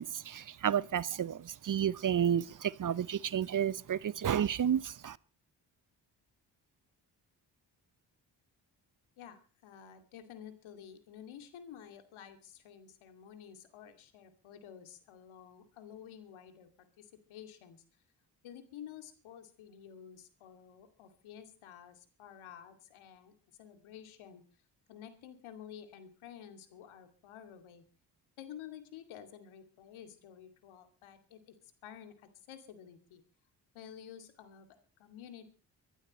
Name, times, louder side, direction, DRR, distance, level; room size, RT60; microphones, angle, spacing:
voice 1, 0.0-5.2, right 9 dB, 40° right, 0.8 m, -31 dB
voice 2, 9.2-17.8 18.4-23.3 23.6-24.4 24.9-27.8 28.4-31.5 31.8-33.2 33.7-35.5, left 9 dB, 75° left, 2.5 m, -51 dB
24.0 x 12.0 x 3.1 m
hypercardioid pair, 40°, 48 cm